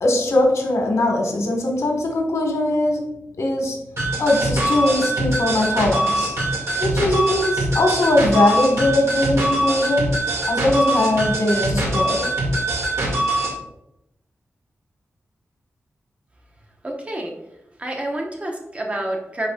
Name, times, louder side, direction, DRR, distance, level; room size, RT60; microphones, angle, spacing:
voice 1, 0.0-3.1 3.4-3.8 4.2-6.3 6.8-10.2 10.5-12.3, left 1 dB, 90° left, 1 dB, 1.7 m, -20 dB
sound 1, 4.0-13.6, right 1 dB, 70° right, 2.4 m, -23 dB
voice 2, 16.8-17.4 17.8-19.5, right 1 dB, 25° right, 0 dB, 1.1 m, -28 dB
10.0 x 4.2 x 2.5 m, 0.84 s
wide cardioid pair, 155°, 5 cm